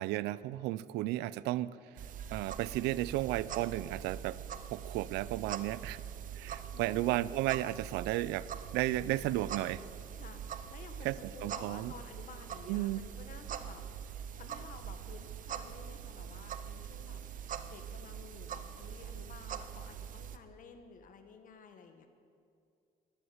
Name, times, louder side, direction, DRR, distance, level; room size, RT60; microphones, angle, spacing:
voice 1, 0.0-1.8 2.3-4.4 4.7-6.0 6.4-9.8 11.0-11.9 12.7-13.1, right 16 dB, 90° right, 19 dB, 0.5 m, -34 dB
sound 1, 2.0-20.4, right 8 dB, 50° right, 0.8 m, -43 dB
voice 2, 6.4-7.1 10.1-22.1, left 5 dB, 55° left, 7 dB, 1.6 m, -53 dB
13.0 x 11.5 x 7.9 m, 2.4 s
cardioid pair, 110°, 17 cm